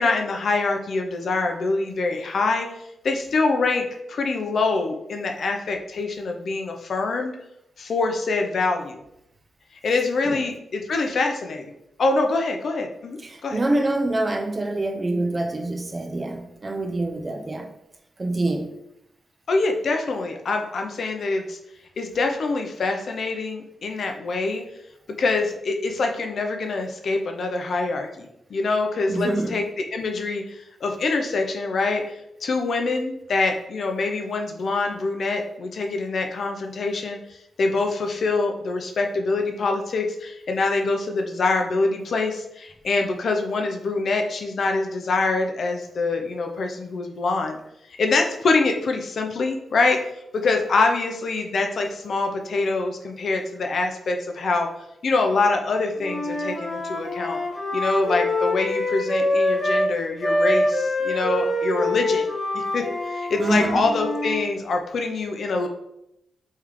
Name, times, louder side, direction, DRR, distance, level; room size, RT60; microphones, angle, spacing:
voice 1, 0.0-2.7 3.0-7.3 7.8-9.0 9.8-11.7 12.0-13.6 19.5-21.6 22.0-24.6 25.2-37.2 37.6-47.6 48.0-50.0 50.3-54.7 55.0-57.4 57.7-65.7, left 3 dB, 55° left, 3 dB, 0.5 m, -25 dB
voice 2, 13.2-17.7 18.2-18.7 29.1-29.6 63.4-63.9, right 2 dB, 25° right, 4 dB, 0.4 m, -26 dB
Wind instrument woodwind instrument, 56.0-59.9 60.2-64.4, left 1 dB, 10° left, 1.1 m, -25 dB
3.2 x 3.1 x 3.7 m, 0.82 s
wide cardioid pair, 150°, 0 cm